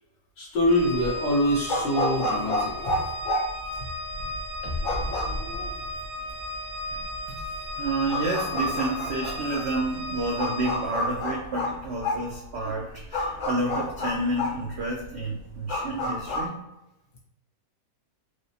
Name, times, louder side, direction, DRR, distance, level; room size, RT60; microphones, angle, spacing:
voice 1, 0.4-2.7 4.6-4.7, left 1 dB, 85° left, -2 dB, 1.7 m, -24 dB
sound 1, 0.6-16.5, left 1 dB, 55° left, 0.8 m, -31 dB
Organ, 0.7-11.1, left 1 dB, 70° right, 1.9 m, -36 dB
voice 2, 7.8-16.6, right 2 dB, 85° right, -2 dB, 0.5 m, -30 dB
4.6 x 2.0 x 2.7 m, 0.89 s
omnidirectional pair, 1.9 m